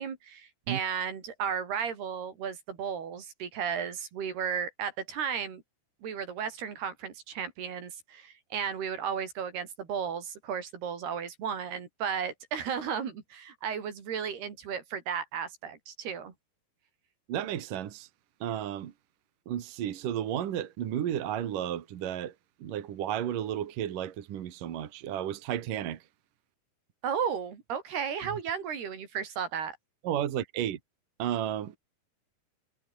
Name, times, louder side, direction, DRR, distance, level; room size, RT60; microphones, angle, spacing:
voice 1, 0.0-5.6 6.0-16.3 27.0-29.8, right 7 dB, 85° right, 5.7 m, -34 dB
voice 2, 17.3-18.1 18.4-18.9 19.5-22.3 22.6-26.0 30.0-30.8 31.2-31.8, right 10 dB, 60° right, 3.2 m, -33 dB
omnidirectional pair, 4.5 m